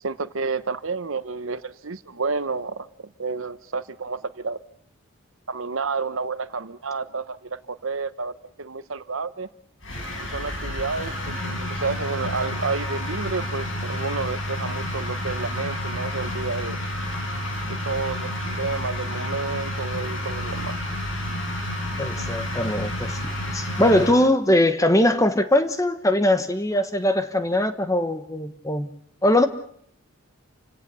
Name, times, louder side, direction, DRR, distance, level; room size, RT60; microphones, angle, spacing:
voice 1, 0.0-4.6 5.5-9.5 10.2-16.8 17.6-20.7, right 4 dB, 70° right, 1.0 m, -30 dB
sound 1, 9.8-24.1, left 1 dB, 60° left, 6.6 m, -30 dB
voice 2, 22.0-28.9 29.2-29.5, left 1 dB, 15° left, 1.2 m, -21 dB
28.5 x 17.0 x 6.9 m
head